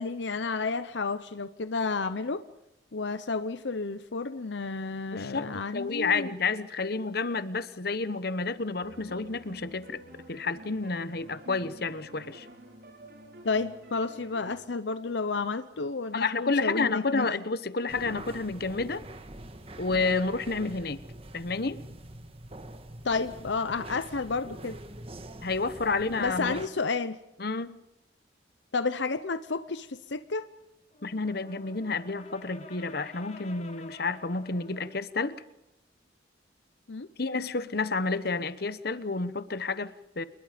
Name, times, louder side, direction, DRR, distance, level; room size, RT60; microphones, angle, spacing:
voice 1, 0.0-2.4 2.9-6.3 13.4-17.3 23.0-24.8 26.2-27.2 28.7-30.5 36.9-37.1, left 4 dB, 75° left, 12 dB, 0.8 m, -31 dB
voice 2, 5.1-5.5 5.7-10.0 10.3-12.5 16.1-19.0 19.8-21.0 21.3-21.8 25.4-26.6 27.4-27.8 31.0-35.4 37.2-40.2, left 3 dB, 55° left, 14 dB, 1.1 m, -30 dB
sound 1, 8.8-14.5, equal, 60° right, 5.6 m, -49 dB
sound 2, 17.9-26.7, right 1 dB, 30° right, 1.6 m, -44 dB
Brass instrument, 30.9-35.1, left 2 dB, 35° left, 1.8 m, -49 dB
28.5 x 21.5 x 5.2 m, 0.90 s
head